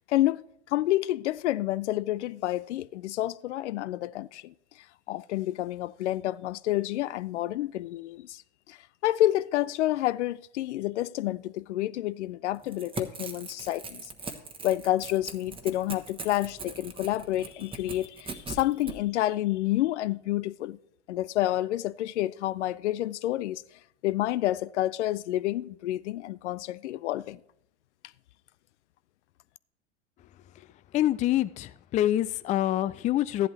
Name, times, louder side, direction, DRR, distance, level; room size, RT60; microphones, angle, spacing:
voice 1, 0.1-4.5 5.1-8.4 8.7-8.8 9.0-14.1 14.6-20.8 21.1-23.6 24.0-27.4, left 14 dB, 80° left, 0.5 m, -29 dB
Crackle / Tearing, 12.6-19.0, right 4 dB, 15° right, 1.1 m, -40 dB
voice 2, 30.9-33.5, left 13 dB, 20° left, 0.3 m, -26 dB
13.0 x 11.0 x 3.3 m
hypercardioid pair, 95°, 35 cm